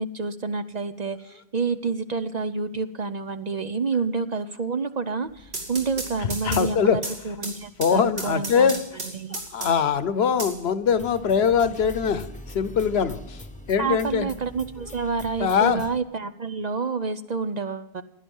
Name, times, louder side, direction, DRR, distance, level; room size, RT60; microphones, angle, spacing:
voice 1, 0.0-8.7 9.1-9.4 13.8-18.0, right 4 dB, 45° right, 11 dB, 0.7 m, -28 dB
sound 1, 5.3-10.0 10.4-11.4, right 2 dB, 80° right, 2.8 m, -35 dB
voice 2, 6.2-7.0 7.8-8.8 9.3-13.4 13.7-14.3 15.4-15.8, left 7 dB, 70° left, 13 dB, 1.1 m, -22 dB
trip hammer, 10.9-16.0, left 1 dB, 10° left, 0.9 m, -42 dB
16.5 x 11.0 x 5.4 m, 0.92 s
omnidirectional pair, 1.1 m